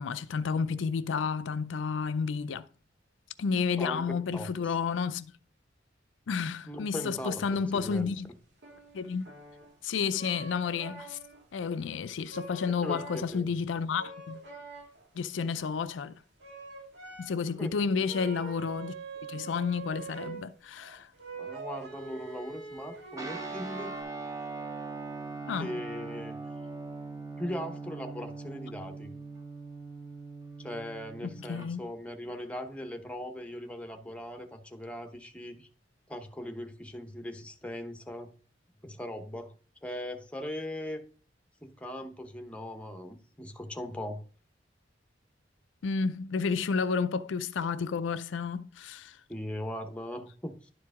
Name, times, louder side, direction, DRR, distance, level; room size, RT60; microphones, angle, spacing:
voice 1, 0.0-2.7 3.4-5.3 6.3-8.3 8.9-9.3 9.8-11.2 11.5-14.4 15.2-16.2 17.2-18.9 19.3-21.1 25.5-25.8 31.2-31.8 45.8-49.2, left 5 dB, 80° left, 0.4 m, -31 dB
voice 2, 3.7-4.0 4.3-4.8 6.7-7.3 7.7-8.1 12.7-13.0 13.3-13.5 17.6-17.7 21.4-23.9 25.5-26.4 27.4-29.1 30.6-35.7 36.1-38.3 38.8-39.5 39.8-41.0 41.6-44.2 49.3-50.7, left 1 dB, 5° left, 0.9 m, -39 dB
sound 1, 7.6-8.1 8.6-9.8 10.1-11.5 11.8-12.0 12.3-13.5 13.9-15.2 15.4-15.5 16.0-16.1 16.4-17.5 18.0-24.0, right 4 dB, 65° right, 2.1 m, -45 dB
Guitar, 23.2-31.7, right 3 dB, 20° right, 1.3 m, -41 dB
11.0 x 4.7 x 3.6 m
head